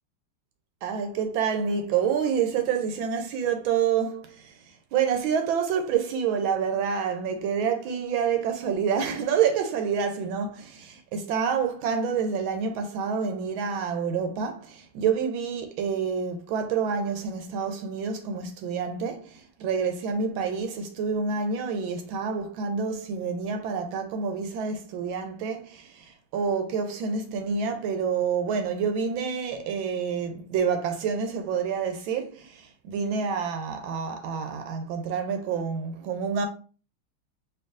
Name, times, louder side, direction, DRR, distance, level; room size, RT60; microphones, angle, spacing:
voice 1, 0.8-4.6 4.9-36.5, right 6 dB, 75° right, 1.3 m, -28 dB
4.5 x 3.0 x 2.4 m
omnidirectional pair, 2.3 m